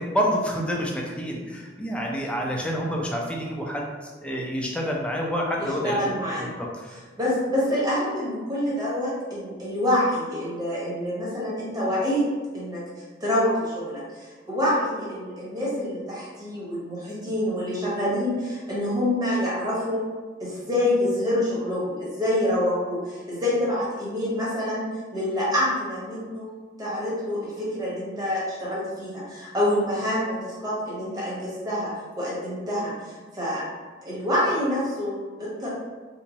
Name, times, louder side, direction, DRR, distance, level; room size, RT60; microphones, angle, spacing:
voice 1, 0.0-7.0, equal, 5° left, -1 dB, 0.4 m, -28 dB
voice 2, 5.8-6.5 7.2-12.2 12.5-12.8 13.2-20.0 20.4-24.9 25.1-26.4 26.8-33.7 34.0-35.7, left 1 dB, 20° right, -7 dB, 1.1 m, -26 dB
3.4 x 2.9 x 2.8 m, 1.4 s
head